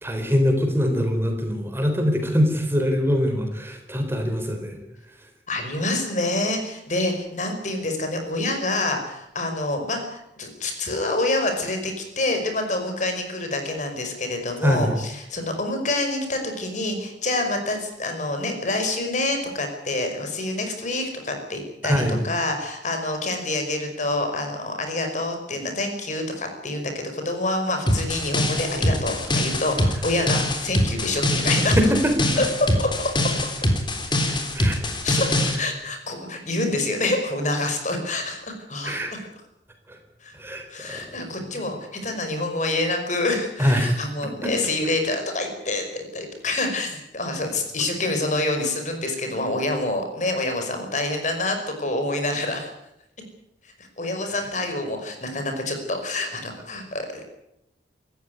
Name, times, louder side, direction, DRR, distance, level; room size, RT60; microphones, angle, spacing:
voice 1, 0.0-4.8 5.1-5.3 14.6-14.9 21.8-22.2 31.8-32.3 34.5-34.8 38.8-39.1 39.9-40.0 40.3-41.1 41.4-41.5 43.6-44.0 44.4-44.5, equal, 15° right, 5 dB, 3.8 m, -23 dB
voice 2, 5.5-21.9 22.2-31.8 32.4-32.5 32.8-33.3 35.0-39.0 40.2-40.3 40.7-52.7 53.8-57.3, left 2 dB, 45° left, 5 dB, 5.3 m, -27 dB
sound 1, 27.9-35.6, left 1 dB, 25° left, 3.5 m, -23 dB
27.0 x 14.5 x 9.5 m, 0.81 s
head